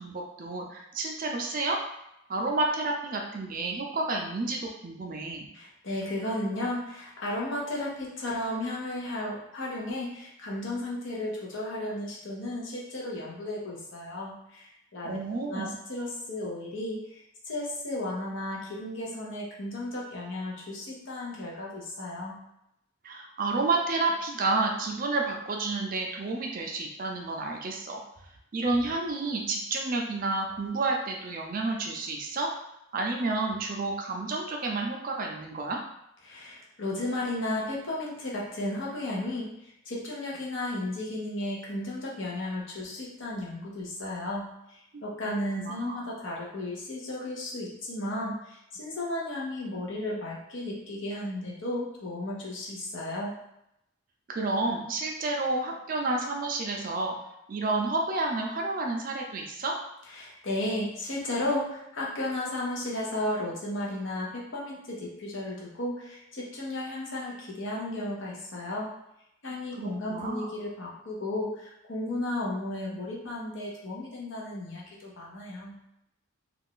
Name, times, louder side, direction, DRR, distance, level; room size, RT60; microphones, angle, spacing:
voice 1, 0.0-1.8 2.3-5.5 15.0-15.7 23.0-28.0 28.5-32.5 32.9-35.8 44.9-46.0 54.3-57.1 57.5-59.8 69.8-70.5, right 3 dB, 40° right, 1 dB, 0.4 m, -30 dB
voice 2, 5.5-15.2 15.5-22.4 36.2-53.4 60.1-68.9 69.4-75.8, left 1 dB, 60° left, -3 dB, 0.7 m, -34 dB
2.4 x 2.3 x 3.6 m, 0.82 s
head